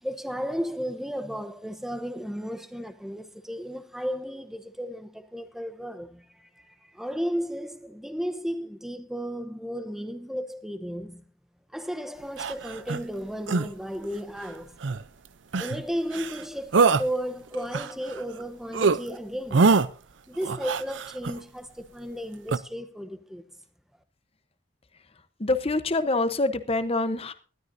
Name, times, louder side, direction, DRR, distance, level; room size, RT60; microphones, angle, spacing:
voice 1, 0.0-11.3 11.7-14.8 15.6-19.8 20.3-23.4, equal, ahead, 0.9 m, -34 dB
sound 1, 12.4-13.0 13.5-13.7 14.8-15.0 15.5-15.8 16.1-16.4 16.7-17.1 17.5-18.4 18.7-19.0 19.5-19.9 20.4-21.4 22.5-22.6, right 4 dB, 85° right, 0.6 m, -23 dB
voice 2, 25.4-27.3, left 2 dB, 30° left, 0.9 m, -25 dB
19.5 x 12.5 x 2.7 m
head